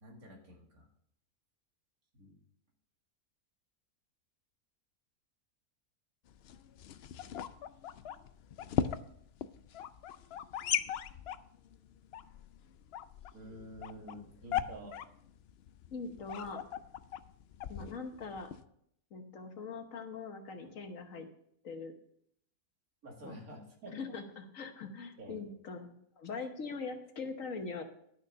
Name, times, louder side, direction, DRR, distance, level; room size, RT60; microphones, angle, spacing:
voice 1, 0.0-0.9 2.1-2.4 13.3-15.0 23.0-24.2 25.2-25.5, right 1 dB, 65° right, 0 dB, 2.6 m, -49 dB
sound 1, 6.3-18.6, left 9 dB, 75° left, 0.5 m, -39 dB
voice 2, 15.9-16.6 17.7-18.5 19.1-21.3 21.6-21.9 23.2-23.4 23.9-27.8, left 4 dB, 60° left, 6 dB, 1.4 m, -42 dB
11.5 x 6.4 x 5.6 m, 0.70 s
omnidirectional pair, 1.6 m